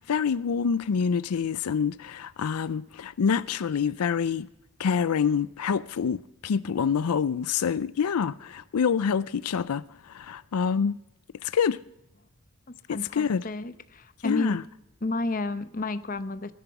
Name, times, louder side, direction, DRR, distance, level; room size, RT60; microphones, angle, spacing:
voice 1, 0.1-4.5 4.8-10.9 11.4-11.8 12.9-13.4 14.2-14.6, left 6 dB, 85° left, 0.4 m, -26 dB
voice 2, 12.9-14.6 15.0-16.5, left 2 dB, 40° left, 0.8 m, -31 dB
17.5 x 11.0 x 6.0 m
head